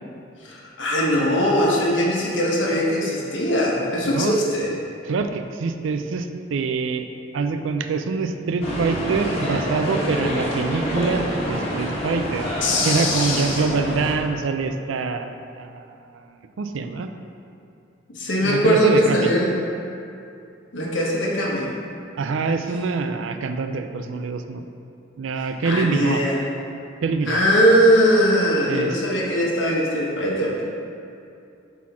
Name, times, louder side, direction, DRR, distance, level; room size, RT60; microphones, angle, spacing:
voice 1, 0.4-4.7 12.6-13.7 18.1-19.5 20.7-21.7 25.6-26.4 27.2-30.6, equal, 80° left, -3 dB, 1.2 m, -20 dB
voice 2, 4.0-4.4 5.1-7.1 7.3-12.5 12.8-16.2 16.6-17.1 18.4-19.3 22.2-24.7 25.2-26.2 27.0-27.4 28.7-29.0, right 4 dB, 90° right, 8 dB, 0.4 m, -25 dB
sound 1, 8.6-14.1, equal, 30° left, 1.3 m, -27 dB
5.7 x 4.1 x 4.7 m, 2.6 s
head